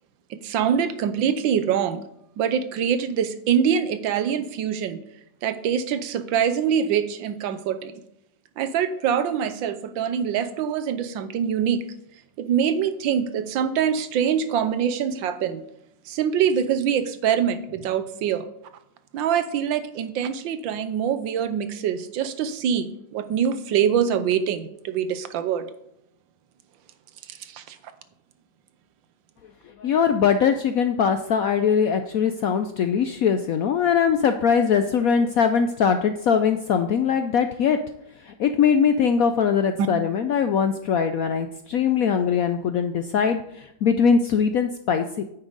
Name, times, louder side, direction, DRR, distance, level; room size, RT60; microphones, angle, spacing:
voice 1, 0.3-2.0 2.4-5.0 5.4-7.9 8.6-11.8 12.4-15.6 16.1-18.5 19.1-25.7 27.3-27.8 39.8-39.9, right 8 dB, 80° right, 11 dB, 1.5 m, -24 dB
voice 2, 29.8-37.8 38.2-45.2, left 7 dB, 70° left, 8 dB, 0.8 m, -21 dB
9.7 x 8.9 x 4.0 m, 0.80 s
omnidirectional pair, 2.1 m